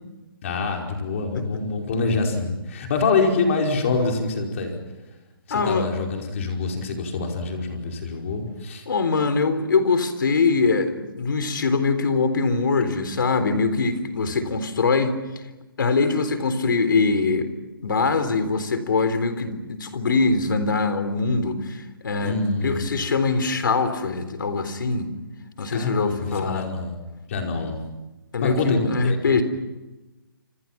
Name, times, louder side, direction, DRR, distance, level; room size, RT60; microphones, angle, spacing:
voice 1, 0.4-4.8 5.5-8.9 14.3-14.4 22.2-22.9 25.7-27.0 27.3-27.8 28.4-29.4, left 3 dB, 35° left, 2 dB, 5.0 m, -25 dB
voice 2, 5.5-5.9 8.9-15.2 15.8-17.5 17.8-25.1 25.6-26.7 28.3-29.4, left 4 dB, 60° left, 10 dB, 3.9 m, -23 dB
28.5 x 26.5 x 6.0 m, 1.1 s
hypercardioid pair, 165°, 12 cm